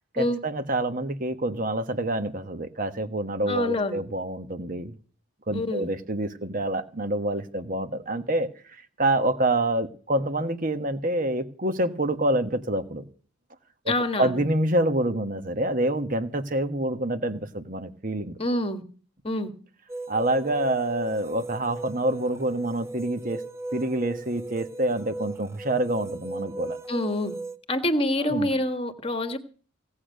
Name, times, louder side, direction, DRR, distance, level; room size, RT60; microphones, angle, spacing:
voice 1, 0.1-4.9 5.5-8.5 9.0-13.0 13.8-18.4 20.1-23.4 23.7-26.8 28.2-28.5, right 1 dB, 40° right, 9 dB, 1.4 m, -27 dB
voice 2, 3.5-4.0 5.5-5.9 13.9-14.4 18.4-18.8 19.2-19.5 26.9-27.3 27.7-29.4, left 1 dB, 25° left, 8 dB, 1.5 m, -26 dB
sound 1, 19.9-27.6, right 2 dB, 15° right, 0.7 m, -37 dB
17.5 x 8.7 x 6.5 m, 0.40 s
head